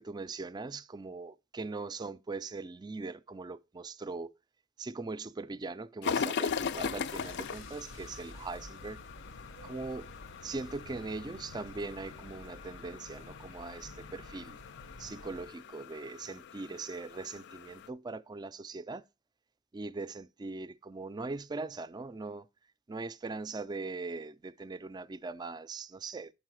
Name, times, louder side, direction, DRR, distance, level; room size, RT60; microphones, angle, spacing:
voice 1, 0.0-4.3 4.8-9.0 9.6-10.1 10.4-14.6 15.0-19.0 19.7-22.5 22.9-26.3, right 3 dB, 20° right, 0.3 m, -40 dB
sound 1, 6.0-17.9, left 6 dB, 60° left, 0.4 m, -40 dB
sound 2, 6.5-15.5, left 2 dB, 90° left, 0.9 m, -50 dB
5.6 x 5.4 x 6.1 m
head